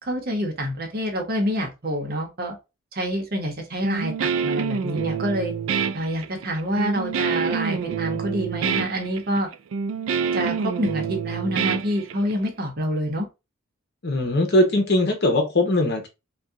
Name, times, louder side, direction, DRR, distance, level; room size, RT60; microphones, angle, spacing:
voice 1, 0.0-2.6 2.9-5.5 5.9-9.5 10.3-13.3, equal, 50° right, 1.0 m, -27 dB
Guitar, 3.8-12.5, right 6 dB, 75° right, 0.3 m, -27 dB
voice 2, 14.0-16.1, left 1 dB, 55° left, 0.9 m, -20 dB
2.7 x 2.3 x 3.5 m
head